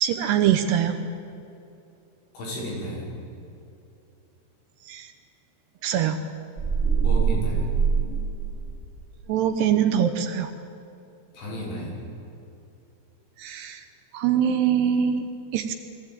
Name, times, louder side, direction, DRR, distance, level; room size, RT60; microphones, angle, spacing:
voice 1, 0.0-1.0 4.9-5.1 5.8-6.2 9.3-10.5 13.4-13.8 14.1-15.7, right 9 dB, 75° right, 7 dB, 2.8 m, -23 dB
voice 2, 2.4-3.1 7.0-7.7 11.3-12.0, equal, 80° left, -5 dB, 8.6 m, -33 dB
sound 1, 6.6-9.0, right 6 dB, 25° right, 2.0 m, -23 dB
22.5 x 15.5 x 9.0 m, 2.7 s
omnidirectional pair, 5.4 m